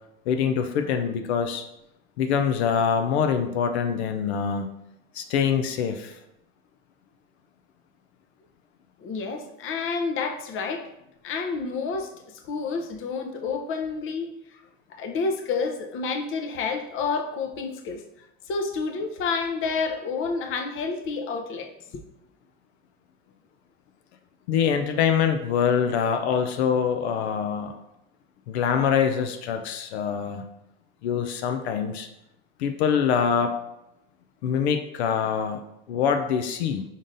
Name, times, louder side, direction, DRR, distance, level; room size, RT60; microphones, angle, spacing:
voice 1, 0.3-1.6 2.2-4.7 5.1-6.1 24.5-27.7 28.5-30.4 31.0-32.1 32.6-33.5 34.4-36.8, left 7 dB, 85° left, 6 dB, 0.5 m, -24 dB
voice 2, 9.0-10.9 11.2-12.1 12.5-14.6 14.9-18.0 18.5-22.0, left 4 dB, 40° left, 5 dB, 0.7 m, -29 dB
5.4 x 3.7 x 2.6 m, 0.85 s
supercardioid pair, 105°, 32 cm